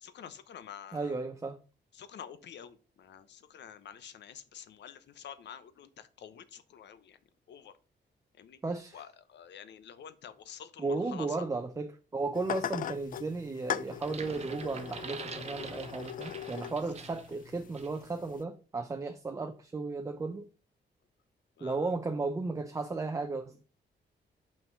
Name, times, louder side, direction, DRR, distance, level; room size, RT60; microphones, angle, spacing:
voice 1, 0.0-1.2 2.0-7.2 7.5-7.7 8.4-8.6 8.9-11.4 21.6-21.9, left 8 dB, 75° left, 0.9 m, -48 dB
voice 2, 0.9-1.6 8.6-9.0 10.8-20.5 21.6-23.6, right 3 dB, 15° right, 0.5 m, -35 dB
sound 1, 12.3-18.4, left 10 dB, 50° left, 0.4 m, -40 dB
sound 2, 13.9-17.3 17.7-18.0, right 5 dB, 35° right, 0.9 m, -45 dB
5.8 x 5.7 x 5.4 m
wide cardioid pair, 170°, 18 cm